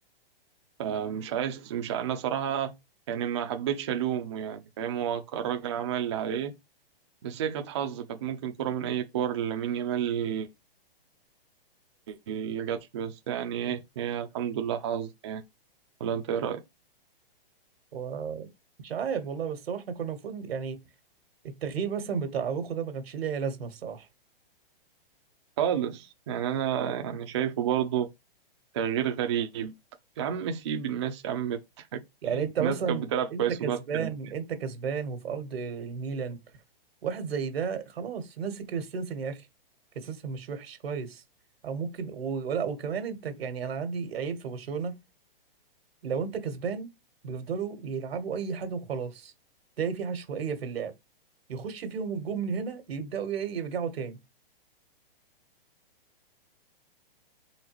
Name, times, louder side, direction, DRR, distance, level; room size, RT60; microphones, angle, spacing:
voice 1, 0.8-2.7 3.1-6.5 7.2-10.5 12.1-15.4 16.0-16.6 25.6-28.1 28.7-29.7 30.2-32.0 32.3-34.1, right 9 dB, 30° right, 0.4 m, -30 dB
voice 2, 17.9-18.5 18.8-20.8 21.6-24.1 32.2-36.4 37.0-39.5 39.9-41.2 41.6-45.0 46.0-46.9 47.2-49.3 49.8-50.9 51.5-54.2, right 6 dB, 80° right, 1.4 m, -33 dB
3.9 x 3.3 x 3.0 m
hypercardioid pair, 165°, 30 cm